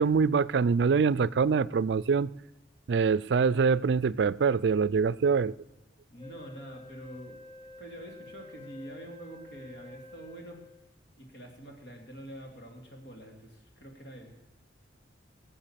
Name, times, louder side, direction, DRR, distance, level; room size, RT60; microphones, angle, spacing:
voice 1, 0.0-2.3 2.9-5.5, right 5 dB, 65° right, 0.4 m, -24 dB
voice 2, 6.1-7.5 7.8-10.7 11.2-14.4, right 1 dB, 70° left, 2.9 m, -46 dB
Wind instrument woodwind instrument, 6.2-10.9, left 3 dB, 30° left, 0.8 m, -49 dB
19.0 x 7.1 x 7.4 m
head